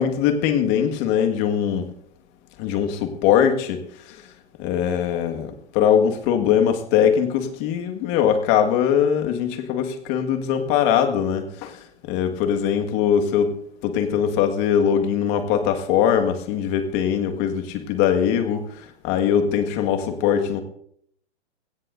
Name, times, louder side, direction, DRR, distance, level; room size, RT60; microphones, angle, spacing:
voice 1, 0.0-1.9 2.6-4.2 4.6-13.6 13.8-20.6, left 8 dB, 35° left, 6 dB, 1.9 m, -21 dB
20.5 x 17.0 x 2.7 m, 0.69 s
hypercardioid pair, 140°, 33 cm